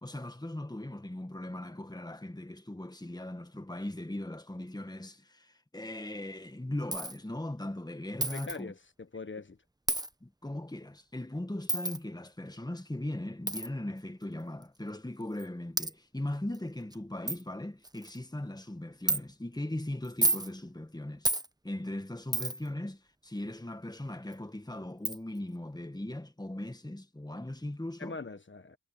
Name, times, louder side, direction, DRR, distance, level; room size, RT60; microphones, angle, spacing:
voice 1, 0.0-8.7 10.2-21.3 21.6-28.2, left 1 dB, 15° left, 1.7 m, -39 dB
Coin (dropping), 6.9-7.2 8.2-8.6 9.9-10.1 11.7-12.0 13.5-13.7 14.6-14.7 15.4-15.5 15.8-15.9 16.5-16.6 16.9-17.0 17.3-17.4 17.8-18.2 19.1-19.2 20.0-20.5 21.2-21.5 22.3-22.7 24.3-24.4 25.0-25.2, right 2 dB, 15° right, 1.0 m, -30 dB
voice 2, 8.3-9.6 28.0-28.8, left 4 dB, 40° left, 1.3 m, -42 dB
cardioid pair, 40°, 31 cm